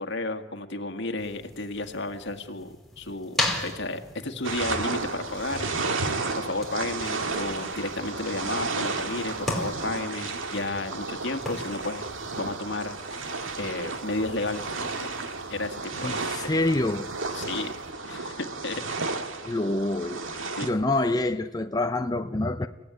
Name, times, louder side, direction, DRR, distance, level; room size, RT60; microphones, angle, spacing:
voice 1, 0.0-6.0 6.4-12.1 12.4-13.2 13.6-15.1 15.5-16.2 16.5-16.6 17.3-17.7 18.0-18.8 20.6-20.7, left 2 dB, 65° left, 1.9 m, -33 dB
sound 1, 1.2-17.9, left 1 dB, ahead, 4.2 m, -39 dB
sound 2, 4.4-20.7, right 3 dB, 85° right, 2.0 m, -33 dB
voice 2, 16.0-17.1 19.4-20.2 20.6-22.7, left 2 dB, 20° left, 0.7 m, -26 dB
29.5 x 15.5 x 9.6 m
head